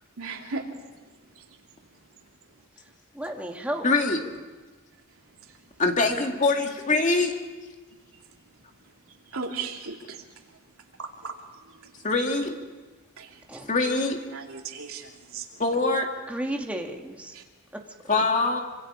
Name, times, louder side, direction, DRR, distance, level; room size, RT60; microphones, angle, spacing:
voice 1, 0.2-0.6 9.3-10.2 11.0-11.3 13.2-13.3 14.3-15.4 17.3-17.4, right 4 dB, 85° right, 2 dB, 2.8 m, -35 dB
voice 2, 3.1-3.9 13.5-13.7 16.3-17.4 17.7-17.8, right 1 dB, 5° right, 1 dB, 1.8 m, -33 dB
voice 3, 3.8-4.2 5.8-7.4 12.0-12.6 13.7-14.2 15.6-16.1 18.1-18.6, left 3 dB, 35° left, 3 dB, 2.2 m, -23 dB
26.5 x 26.0 x 5.0 m, 1.3 s
head